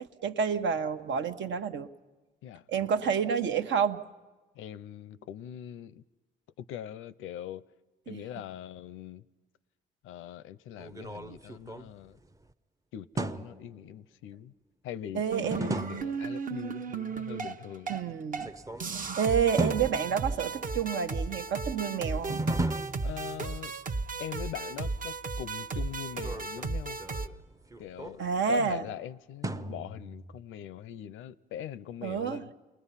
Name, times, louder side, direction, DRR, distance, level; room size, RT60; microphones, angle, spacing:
voice 1, 0.0-1.9 2.7-4.0 8.1-8.2 15.1-15.8 17.9-18.5 18.9-22.4 28.2-28.8 32.0-32.4, right 7 dB, 70° right, 1.1 m, -29 dB
voice 2, 2.4-3.1 4.5-6.0 6.6-7.6 8.1-9.2 10.0-12.2 12.9-14.5 14.8-18.0 23.0-23.7 24.2-27.0 27.8-32.5, left 10 dB, 90° left, 0.6 m, -42 dB
sound 1, 10.8-12.5 13.2-13.8 15.4-16.3 18.3-19.1 19.6-20.7 22.3-23.7 26.1-28.6 29.4-30.4, right 2 dB, 15° right, 0.6 m, -36 dB
sound 2, 15.3-18.0 18.3-18.5 18.8-27.3, right 4 dB, 45° right, 0.9 m, -35 dB
28.5 x 20.0 x 5.7 m
cardioid pair, 90°, 20 cm